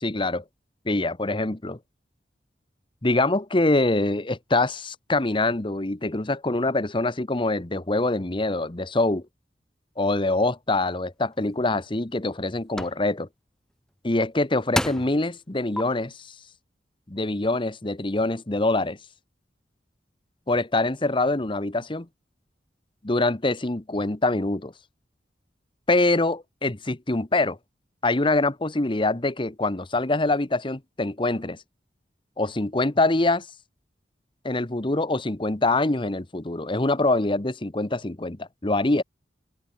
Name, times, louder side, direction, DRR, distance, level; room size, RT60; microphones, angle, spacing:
voice 1, 0.0-0.4 0.8-1.8 3.0-9.2 10.0-13.3 14.0-16.3 17.1-19.0 20.5-22.1 23.0-24.7 25.9-27.6 28.0-31.6 32.4-33.5 34.4-39.0, left 2 dB, 30° left, 1.1 m, -24 dB
sound 1, 11.4-11.5 12.1-12.4 12.8-13.0 14.2-14.3 14.7-15.2 15.8-15.9, left 1 dB, 5° left, 0.3 m, -28 dB
open air
head